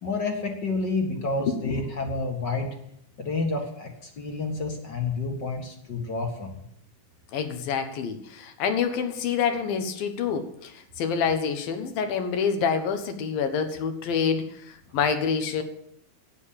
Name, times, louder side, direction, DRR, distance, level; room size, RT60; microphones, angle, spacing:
voice 1, 0.0-2.7 3.2-6.5, left 3 dB, 40° left, 3 dB, 1.9 m, -29 dB
voice 2, 7.3-15.6, left 6 dB, 75° left, 7 dB, 3.1 m, -27 dB
12.0 x 9.5 x 8.7 m, 0.73 s
omnidirectional pair, 4.2 m